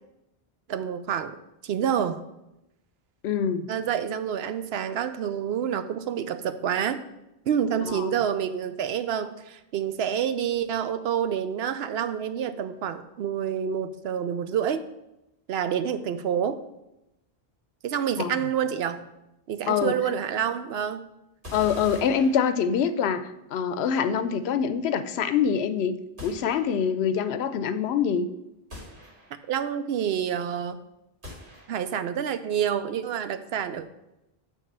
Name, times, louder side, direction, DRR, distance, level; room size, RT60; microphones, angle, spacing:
voice 1, 0.7-1.4 1.6-2.3 3.7-7.0 7.5-14.8 15.5-16.6 17.8-19.1 19.5-21.1 29.5-30.8 31.7-33.9, right 8 dB, 80° right, 11 dB, 0.8 m, -28 dB
voice 2, 3.2-3.7 7.9-8.0 18.2-18.4 19.7-19.9 21.5-25.9 26.2-28.3, left 7 dB, 90° left, 12 dB, 0.9 m, -25 dB
sound 1, 21.4-23.1 26.2-27.1 28.7-29.6 31.2-32.1, left 1 dB, 55° right, 2.1 m, -43 dB
8.5 x 3.4 x 6.6 m, 0.89 s
omnidirectional pair, 1.0 m